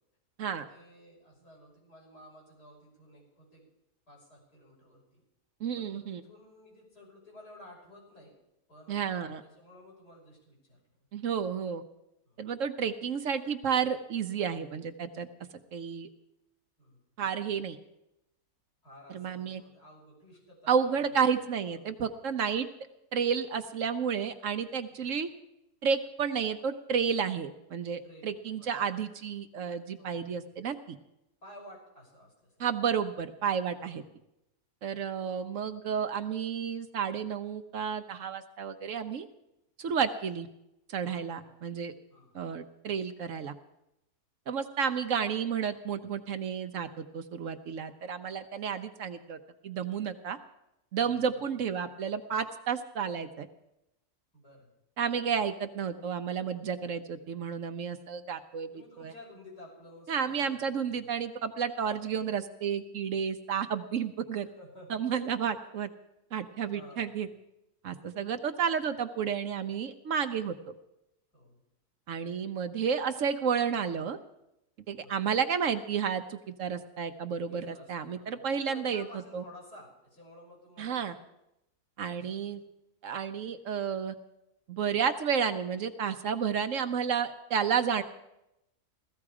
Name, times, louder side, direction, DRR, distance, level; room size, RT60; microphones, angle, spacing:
voice 1, 0.4-3.7 4.1-5.2 5.7-8.4 8.7-9.2 9.5-11.1 12.2-12.4 16.8-17.0 18.8-21.2 21.7-22.3 24.9-25.1 28.0-28.7 30.0-30.5 31.4-32.5 33.8-34.1 34.9-35.0 41.3-41.6 42.1-42.4 51.0-51.4 54.3-54.7 58.7-61.1 64.5-64.9 66.7-67.2 71.3-71.6 74.9-75.5 77.4-81.2 82.1-82.7, left 1 dB, 85° left, -3 dB, 6.4 m, -53 dB
voice 2, 5.6-6.2 8.9-9.4 11.1-11.8 12.4-15.3 15.7-16.1 17.2-17.8 19.1-19.6 20.7-22.7 23.1-25.3 25.8-31.0 32.6-34.0 34.8-39.3 39.8-40.5 40.9-41.9 42.3-43.5 44.5-49.4 49.6-50.4 50.9-53.5 55.0-58.7 59.0-59.1 60.1-64.5 64.9-65.9 66.3-67.3 67.8-70.6 72.1-74.2 74.9-79.0 79.3-79.4 80.8-81.1 82.0-82.6 83.0-84.1 84.7-88.0, right 7 dB, 60° right, 9 dB, 1.0 m, -31 dB
16.5 x 14.0 x 4.9 m, 0.88 s
omnidirectional pair, 1.7 m